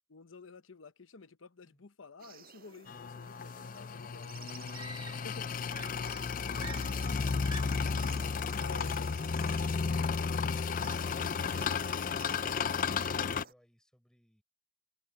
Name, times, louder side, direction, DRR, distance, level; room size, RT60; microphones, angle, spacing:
voice 1, 0.1-4.7 5.0-5.7 6.9-7.1 8.2-9.2, left 3 dB, 75° left, 0.9 m, -52 dB
sound 1, 2.2-13.5, right 7 dB, 45° right, 7.0 m, -55 dB
sound 2, 2.9-13.4, left 5 dB, 40° left, 0.4 m, -33 dB
Screaming, 3.9-4.0 4.7-5.4 5.7-8.0 9.0-9.3, right 2 dB, 20° right, 1.8 m, -48 dB
voice 2, 10.6-14.4, equal, 5° left, 5.8 m, -67 dB
head